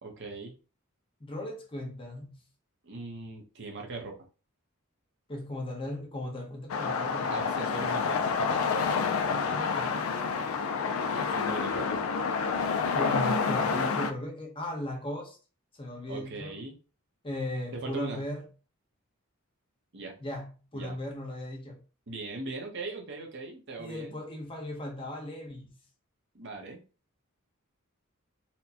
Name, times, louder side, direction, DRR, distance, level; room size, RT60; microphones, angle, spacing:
voice 1, 0.0-0.6 2.8-4.2 7.3-8.4 11.1-12.1 16.1-16.8 17.7-18.2 19.9-20.2 20.7-21.0 22.1-24.2 26.3-26.8, right 3 dB, 55° right, 0.9 m, -40 dB
voice 2, 1.2-2.3 5.3-7.5 8.8-10.3 12.9-15.4 15.7-16.5 17.2-18.4 20.2-21.8 23.8-25.7, left 1 dB, 25° left, 0.7 m, -37 dB
sound 1, 6.7-14.1, left 5 dB, 70° left, 0.4 m, -28 dB
4.3 x 2.2 x 2.8 m
head